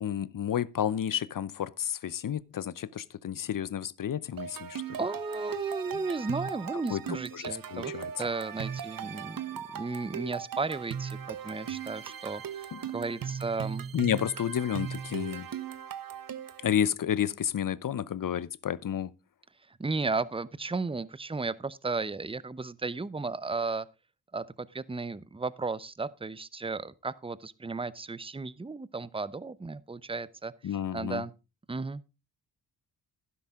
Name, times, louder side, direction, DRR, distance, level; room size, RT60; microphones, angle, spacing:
voice 1, 0.0-4.8 6.9-7.0 7.3-8.1 12.7-12.8 13.9-15.5 16.6-19.1 30.6-31.2, left 9 dB, 50° left, 0.8 m, -31 dB
sound 1, 4.4-16.7, right 8 dB, 55° right, 1.1 m, -38 dB
voice 2, 5.0-13.9 19.7-23.9 24.3-31.3 31.7-32.0, right 3 dB, 15° right, 0.7 m, -34 dB
11.5 x 10.0 x 3.7 m
supercardioid pair, 55°, 42 cm